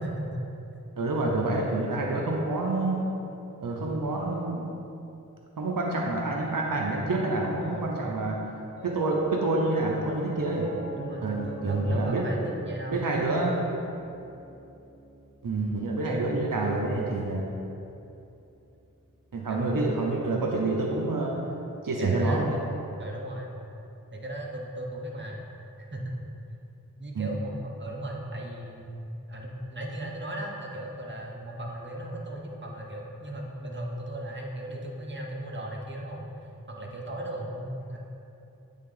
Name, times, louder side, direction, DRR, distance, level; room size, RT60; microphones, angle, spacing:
voice 1, 0.0-0.4 3.7-4.0 7.6-8.2 10.9-13.0 16.0-16.2 19.5-19.7 22.0-22.6 23.0-23.5 24.1-25.4 25.8-26.2 27.0-38.0, right 1 dB, 35° right, -1 dB, 0.9 m, -37 dB
voice 2, 1.0-3.1 3.6-4.8 5.6-8.4 8.8-10.7 11.2-12.3 12.9-13.6 15.4-17.6 19.3-21.3 21.8-22.6 27.1-27.3, right 2 dB, 75° right, -1 dB, 0.7 m, -27 dB
Piano, 8.7-19.2, equal, 85° left, 1.2 m, -46 dB
8.4 x 3.6 x 3.8 m, 2.8 s
wide cardioid pair, 50°, 33 cm